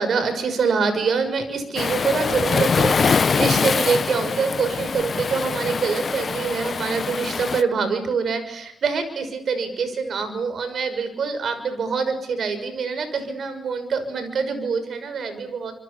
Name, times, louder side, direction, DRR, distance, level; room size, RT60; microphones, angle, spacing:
voice 1, 0.0-15.7, right 5 dB, 60° right, 10 dB, 6.1 m, -25 dB
Waves surf, 1.8-7.6, left 5 dB, 50° left, 1.1 m, -23 dB
28.5 x 26.5 x 7.0 m, 0.74 s
supercardioid pair, 60°, 0 cm